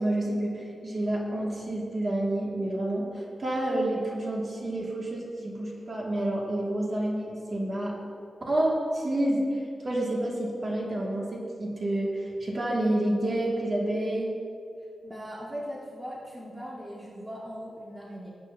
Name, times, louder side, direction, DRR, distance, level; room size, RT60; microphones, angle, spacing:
voice 1, 0.0-7.9 8.5-9.4 9.8-14.3, right 1 dB, 40° right, -3 dB, 2.0 m, -29 dB
voice 2, 15.0-18.3, equal, 15° right, -5 dB, 1.5 m, -39 dB
19.0 x 8.2 x 2.7 m, 2.6 s
wide cardioid pair, 130°, 0 cm